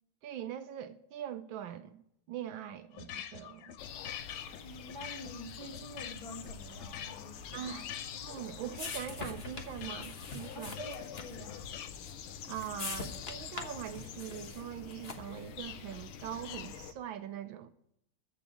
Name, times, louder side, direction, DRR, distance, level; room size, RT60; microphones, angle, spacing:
voice 1, 0.2-2.0 2.3-3.8 7.5-7.9 8.1-10.8 12.5-17.7, right 10 dB, 75° right, 1.3 m, -42 dB
sound 1, 2.9-11.9, left 10 dB, 65° left, 1.2 m, -46 dB
sound 2, 3.8-16.9, left 8 dB, 85° left, 1.6 m, -46 dB
voice 2, 4.6-7.9 10.5-11.6, equal, 15° left, 1.7 m, -47 dB
sound 3, 8.2-15.5, left 4 dB, 35° left, 1.2 m, -45 dB
14.0 x 5.0 x 8.1 m
omnidirectional pair, 2.3 m